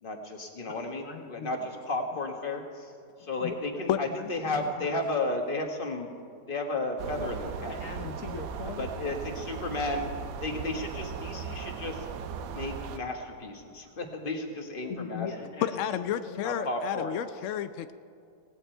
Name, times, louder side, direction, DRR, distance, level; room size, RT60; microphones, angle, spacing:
voice 1, 0.0-6.1 6.5-8.1 8.8-10.1 10.4-12.1 12.5-15.3 16.4-17.2, left 2 dB, 30° left, 3 dB, 1.6 m, -33 dB
voice 2, 1.0-1.7 3.2-3.6 4.1-5.1 7.7-8.9 14.9-16.5, left 6 dB, 55° left, 3 dB, 1.0 m, -41 dB
sound 1, 7.0-13.0, right 6 dB, 80° right, 1.4 m, -38 dB
voice 3, 15.6-17.9, left 10 dB, 80° left, 11 dB, 0.6 m, -30 dB
18.0 x 16.0 x 4.5 m, 2.4 s
omnidirectional pair, 1.9 m